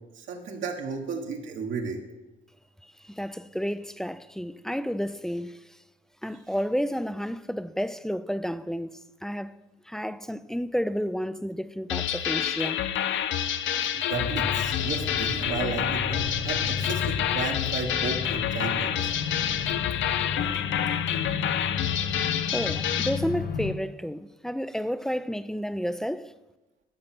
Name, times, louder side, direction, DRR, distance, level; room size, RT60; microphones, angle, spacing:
voice 1, 0.1-2.0 13.9-19.1, right 5 dB, 75° right, 1.5 m, -34 dB
voice 2, 2.8-5.8 6.2-9.6 9.9-12.8 22.5-26.3, equal, ahead, 0.4 m, -31 dB
sound 1, 11.9-23.2, left 10 dB, 70° left, 0.6 m, -28 dB
sound 2, 14.1-23.7, left 6 dB, 50° left, 0.9 m, -33 dB
13.0 x 5.7 x 6.0 m
cardioid pair, 90°, 20 cm